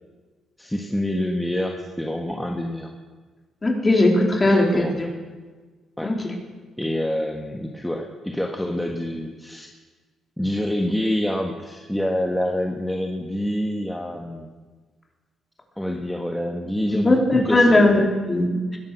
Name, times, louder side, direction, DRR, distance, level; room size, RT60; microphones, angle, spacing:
voice 1, 0.6-2.9 4.4-5.1 6.0-6.2 6.8-9.7 10.4-14.5 15.8-17.9, left 1 dB, 5° left, 1 dB, 1.4 m, -27 dB
voice 2, 3.6-5.1 6.0-6.3 17.0-18.8, left 1 dB, 25° left, 1 dB, 3.4 m, -18 dB
20.5 x 11.0 x 6.1 m, 1.4 s
cardioid pair, 90°, 0 cm